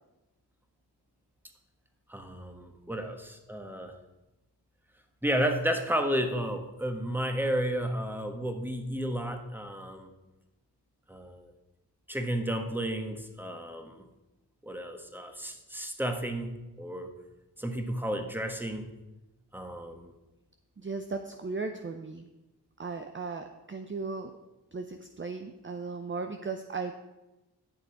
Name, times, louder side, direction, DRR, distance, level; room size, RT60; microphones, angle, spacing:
voice 1, 2.1-3.9 5.2-10.1 11.1-11.5 12.1-14.1 14.6-16.5 16.8-17.1 17.6-18.9 19.5-20.1, equal, 5° right, 6 dB, 1.3 m, -32 dB
voice 2, 20.8-22.3 22.8-24.3 24.7-26.9, right 4 dB, 30° right, 6 dB, 0.7 m, -36 dB
11.0 x 6.7 x 4.8 m, 1.0 s
cardioid pair, 55°, 41 cm